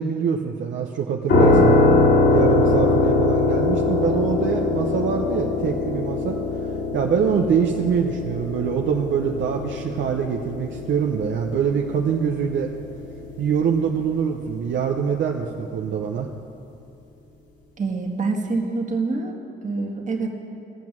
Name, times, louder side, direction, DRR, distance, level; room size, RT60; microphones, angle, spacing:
voice 1, 0.0-1.8 2.3-6.3 6.9-12.7 13.4-16.3, right 7 dB, 70° right, 2 dB, 0.8 m, -24 dB
sound 1, 1.3-14.1, left 2 dB, 70° left, 3.0 m, -22 dB
voice 2, 17.8-20.3, right 3 dB, 40° right, 1 dB, 1.8 m, -26 dB
18.0 x 6.0 x 7.5 m, 2.5 s
cardioid pair, 90°, 20 cm